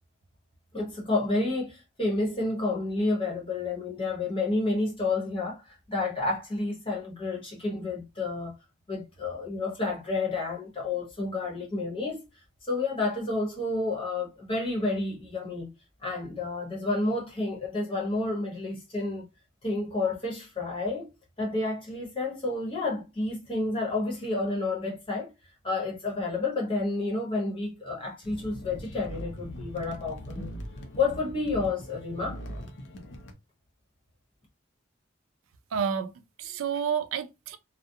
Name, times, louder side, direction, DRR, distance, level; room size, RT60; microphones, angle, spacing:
voice 1, 0.7-8.5 8.9-12.2 12.6-15.7 16.0-19.3 19.6-21.1 21.4-25.3 25.6-30.5 30.9-32.4, left 2 dB, 25° left, 0.9 m, -30 dB
sound 1, 28.2-33.3, equal, 60° left, 0.6 m, -40 dB
voice 2, 35.7-37.6, right 7 dB, 85° right, 0.4 m, -30 dB
2.4 x 2.1 x 2.6 m
head